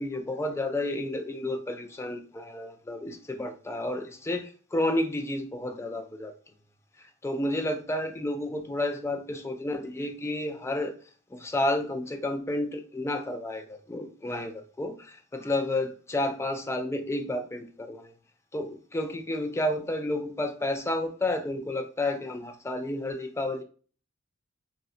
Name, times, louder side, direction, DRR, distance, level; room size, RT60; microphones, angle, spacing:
voice 1, 0.0-6.3 7.2-10.9 11.3-18.1 18.5-23.6, left 1 dB, 10° left, 0.3 m, -31 dB
3.7 x 2.1 x 2.5 m
head